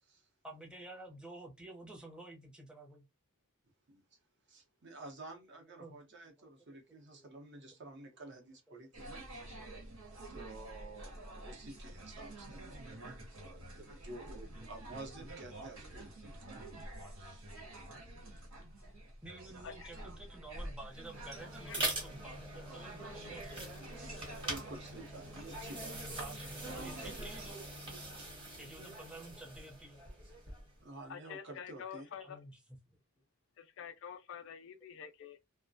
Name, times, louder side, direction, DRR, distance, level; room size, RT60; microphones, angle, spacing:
voice 1, 0.4-3.1 5.8-6.0 6.4-6.5 7.1-7.5 7.8-7.9 8.7-8.8 14.6-14.7 19.2-23.8 26.0-27.6 28.0-28.2 28.5-30.1 32.2-32.5 32.9-33.0, right 2 dB, 5° right, 0.6 m, -51 dB
voice 2, 3.9-4.2 4.5-9.3 10.3-16.6 17.2-17.5 23.2-23.3 24.4-26.1 27.0-27.1 30.8-32.1, right 2 dB, 55° right, 0.7 m, -51 dB
sound 1, 8.9-27.5, right 1 dB, 80° right, 1.1 m, -49 dB
sound 2, 20.9-30.8, right 2 dB, 25° right, 0.9 m, -43 dB
voice 3, 31.1-32.4 33.6-35.4, left 8 dB, 60° left, 0.4 m, -47 dB
2.3 x 2.1 x 2.5 m
head